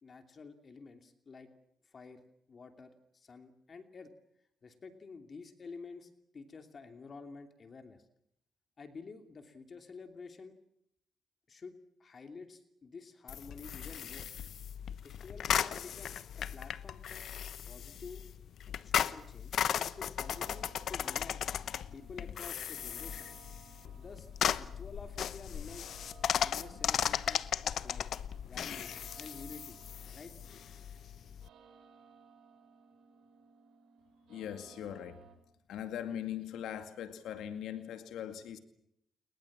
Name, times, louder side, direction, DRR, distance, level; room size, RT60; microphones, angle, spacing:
voice 1, 0.0-1.5 1.8-2.2 2.5-4.1 4.6-8.0 8.8-10.6 11.5-14.3 15.0-17.2 17.7-18.2 18.8-21.4 21.9-23.3 24.0-25.9 26.3-28.1 28.5-29.8 30.1-30.3, left 4 dB, 40° left, 2.8 m, -50 dB
sound 1, 13.3-31.5, left 9 dB, 65° left, 0.9 m, -36 dB
sound 2, 20.2-35.4, right 7 dB, 75° right, 6.0 m, -60 dB
voice 2, 34.3-35.2 35.7-38.6, left 10 dB, 80° left, 2.2 m, -40 dB
29.5 x 21.5 x 7.4 m
cardioid pair, 90°, 0 cm